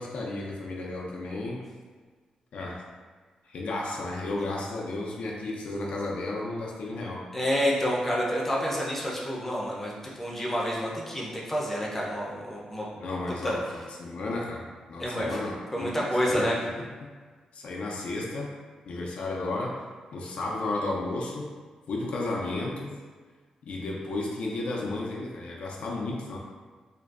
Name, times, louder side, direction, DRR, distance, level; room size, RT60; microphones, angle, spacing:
voice 1, 0.0-1.7 2.5-2.9 3.5-7.2 12.9-17.1 17.5-18.5 18.9-19.8 20.1-21.5 21.9-22.9 23.6-26.4, left 2 dB, 70° left, -2 dB, 0.3 m, -33 dB
voice 2, 7.3-12.8 13.4-13.6 15.0-15.4 15.7-16.6, equal, 10° left, -5 dB, 0.4 m, -28 dB
2.5 x 2.2 x 2.3 m, 1.5 s
wide cardioid pair, 135°, 2 cm